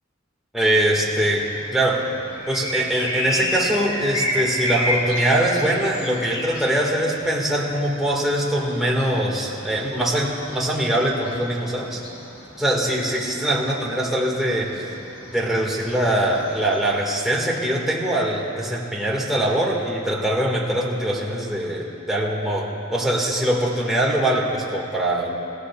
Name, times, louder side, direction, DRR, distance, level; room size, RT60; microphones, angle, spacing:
voice 1, 0.5-1.4 1.7-2.0 2.5-12.0 12.6-14.8 15.3-25.4, right 1 dB, ahead, -4 dB, 1.9 m, -22 dB
sound 1, 0.9-17.0, equal, 85° left, 3.8 m, -32 dB
27.5 x 15.5 x 2.4 m, 2.8 s
head